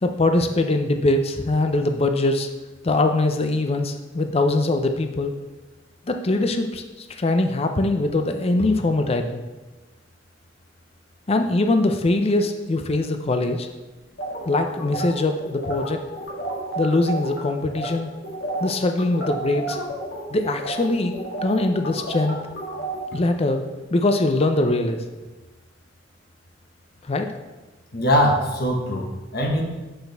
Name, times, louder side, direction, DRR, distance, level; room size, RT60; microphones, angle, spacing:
voice 1, 0.0-2.5 2.8-5.3 6.1-6.8 7.1-9.4 11.3-13.7 14.5-16.0 16.8-18.1 18.6-19.8 20.3-21.2 21.4-22.4 23.1-23.6 23.9-25.0 27.0-27.3, left 2 dB, 30° left, 6 dB, 0.5 m, -22 dB
sound 1, 14.2-17.4 17.7-17.9 18.2-23.0, right 2 dB, 85° left, 2.1 m, -31 dB
voice 2, 27.9-29.6, equal, 55° left, 0 dB, 1.1 m, -21 dB
8.0 x 6.0 x 3.4 m, 1.1 s
head